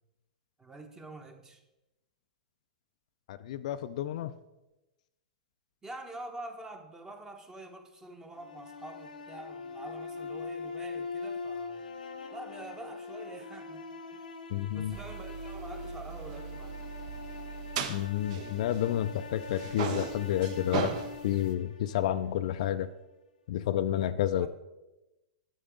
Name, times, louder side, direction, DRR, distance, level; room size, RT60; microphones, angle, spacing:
voice 1, 0.6-1.6 5.8-11.8 12.3-14.2 14.7-16.8 24.4-24.5, right 2 dB, 15° right, 6 dB, 1.0 m, -46 dB
voice 2, 3.3-4.3 14.5-15.0 17.9-20.9 21.2-22.9 23.5-24.5, left 11 dB, 60° left, 12 dB, 0.4 m, -30 dB
sound 1, 8.3-22.5, left 4 dB, 80° left, 0.8 m, -42 dB
sound 2, 14.9-19.2 19.4-21.5, right 7 dB, 50° right, 0.8 m, -38 dB
8.9 x 6.9 x 3.9 m, 1.0 s
hypercardioid pair, 115°, 4 cm